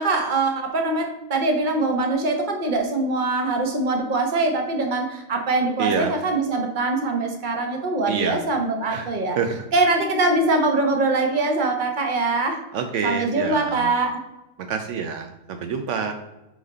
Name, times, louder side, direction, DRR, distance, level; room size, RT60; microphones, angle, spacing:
voice 1, 0.0-9.4 9.7-12.6 13.0-14.2, right 2 dB, 40° right, 3 dB, 1.1 m, -23 dB
voice 2, 5.8-6.1 8.1-8.4 8.9-9.7 12.7-13.9 14.6-16.1, right 6 dB, 75° right, 6 dB, 0.9 m, -27 dB
6.1 x 4.1 x 4.0 m, 0.96 s
omnidirectional pair, 1.3 m